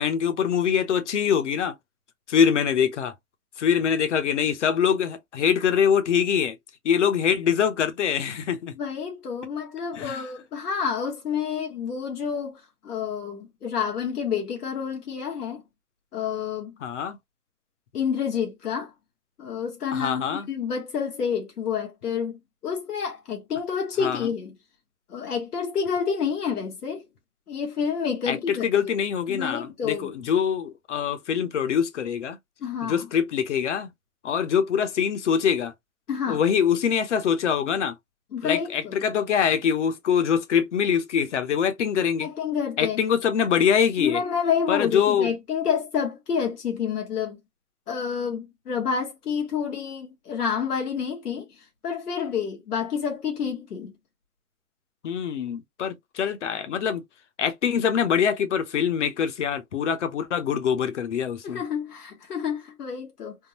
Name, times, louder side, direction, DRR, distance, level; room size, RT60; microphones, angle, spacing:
voice 1, 0.0-1.7 2.3-3.1 3.6-6.6 6.8-8.7 10.0-10.2 16.8-17.2 19.9-20.5 24.0-24.2 28.3-32.4 32.8-33.9 34.2-35.7 36.3-37.9 38.4-42.3 42.8-44.2 44.7-45.3 55.0-57.0 57.4-61.6, left 7 dB, 50° left, 0.8 m, -24 dB
voice 2, 8.8-15.6 16.1-16.7 17.9-18.9 19.4-24.6 25.1-27.0 27.5-28.7 29.3-30.1 32.6-33.1 36.1-36.4 38.3-39.0 42.2-43.0 44.0-47.4 47.9-51.5 51.8-53.9 61.4-63.4, left 7 dB, 90° left, 1.4 m, -29 dB
3.6 x 2.2 x 2.8 m
hypercardioid pair, 165°, 45 cm